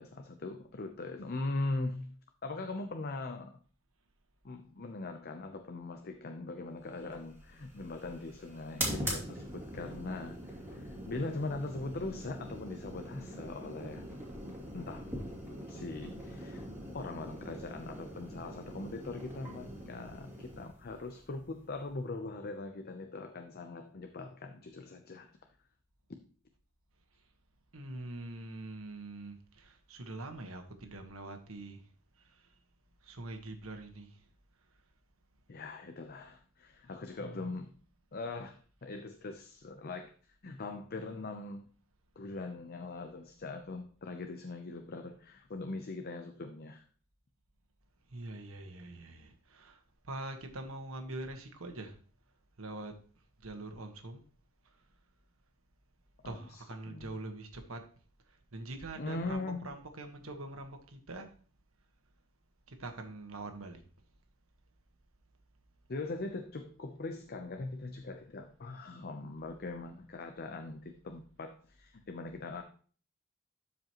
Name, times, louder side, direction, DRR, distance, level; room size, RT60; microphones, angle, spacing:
voice 1, 0.0-2.1 2.4-3.6 4.4-14.1 14.7-15.1 15.7-16.7 16.9-25.3 35.5-37.7 38.1-40.1 40.4-41.7 42.2-46.8 56.2-57.1 59.0-59.7 65.9-72.6, left 2 dB, 50° left, 0.7 m, -41 dB
sound 1, 6.9-22.2, right 1 dB, 15° right, 2.5 m, -43 dB
voice 2, 27.7-31.9 32.2-32.6 33.0-34.2 36.9-37.6 48.1-52.0 52.6-53.0 53.4-54.2 54.7-54.8 56.2-57.9 58.3-61.3 62.7-63.8, right 2 dB, 80° right, 1.4 m, -44 dB
12.5 x 5.0 x 3.0 m
head